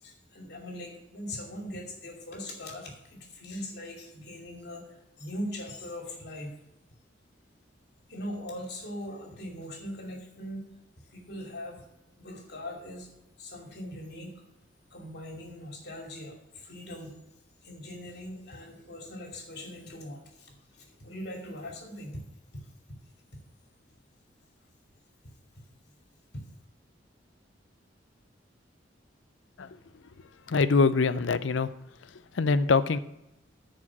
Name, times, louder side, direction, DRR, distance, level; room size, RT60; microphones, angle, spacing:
voice 1, 0.0-6.5 8.1-10.6 11.1-11.9 12.2-13.1 13.4-14.3 14.9-17.1 17.6-22.2 26.3-26.4, left 1 dB, 60° left, 1 dB, 2.6 m, -40 dB
voice 2, 30.5-31.7 32.4-33.0, left 4 dB, 80° left, 15 dB, 0.5 m, -23 dB
9.7 x 5.0 x 7.2 m, 0.91 s
head